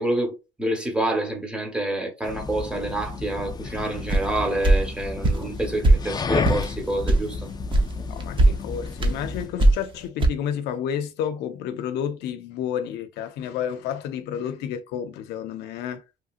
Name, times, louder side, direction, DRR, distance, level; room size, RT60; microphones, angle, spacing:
voice 1, 0.0-7.5, right 1 dB, 5° right, 1.1 m, -27 dB
sound 1, 2.2-9.6, left 4 dB, 25° left, 0.3 m, -32 dB
sound 2, 4.1-4.3 4.6-4.8 5.2-5.4 5.8-6.0 6.4-6.6 7.1-7.2 7.7-7.9 8.2-8.5 9.0-9.2 9.6-9.9 10.2-10.3, right 2 dB, 30° right, 0.7 m, -17 dB
voice 2, 8.1-16.0, left 9 dB, 80° left, 0.5 m, -30 dB
3.0 x 2.7 x 2.4 m
cardioid pair, 110°, 17 cm